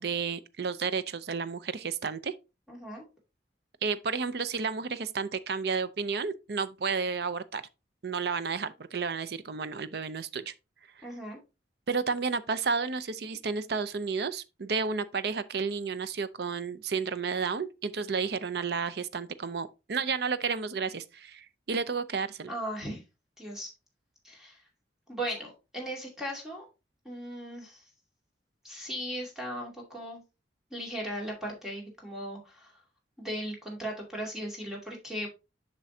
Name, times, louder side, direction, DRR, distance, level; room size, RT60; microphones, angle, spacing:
voice 1, 0.0-2.3 3.8-7.6 8.0-10.5 11.0-11.1 11.9-22.5, right 5 dB, 60° right, 0.5 m, -32 dB
voice 2, 2.7-3.0 11.0-11.4 22.5-23.0 23.4-23.7 24.2-24.6 25.1-26.7 27.0-27.9 28.6-30.2 30.7-32.7 33.2-35.3, equal, 5° right, 2.4 m, -37 dB
7.5 x 6.0 x 2.7 m
head